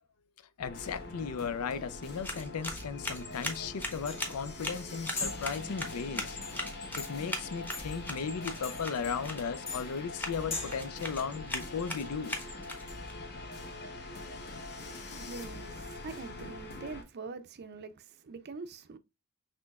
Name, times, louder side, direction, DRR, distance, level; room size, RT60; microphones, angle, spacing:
voice 1, 0.6-6.4 7.0-12.4, left 6 dB, 85° left, 0.4 m, -36 dB
sound 1, 0.6-17.0, left 2 dB, 50° left, 0.9 m, -43 dB
sound 2, 2.0-13.1, left 1 dB, 10° left, 0.8 m, -41 dB
sound 3, 3.7-10.9, left 3 dB, 30° left, 1.5 m, -42 dB
voice 2, 15.1-19.0, right 4 dB, 50° right, 0.5 m, -44 dB
6.0 x 3.1 x 2.3 m
head